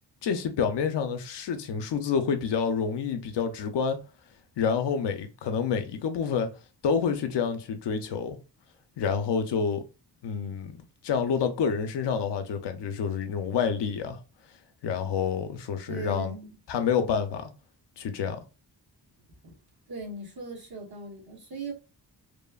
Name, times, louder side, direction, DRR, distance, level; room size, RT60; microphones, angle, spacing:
voice 1, 0.2-4.0 4.6-6.5 6.8-8.4 9.0-9.8 10.2-10.8 11.0-14.2 14.8-16.3 16.7-17.5 18.0-18.4, left 6 dB, 80° left, 0.6 m, -28 dB
voice 2, 15.9-16.6 19.4-19.5 19.9-21.7, right 3 dB, 60° right, 1.1 m, -39 dB
3.1 x 2.1 x 2.3 m
wide cardioid pair, 135°, 41 cm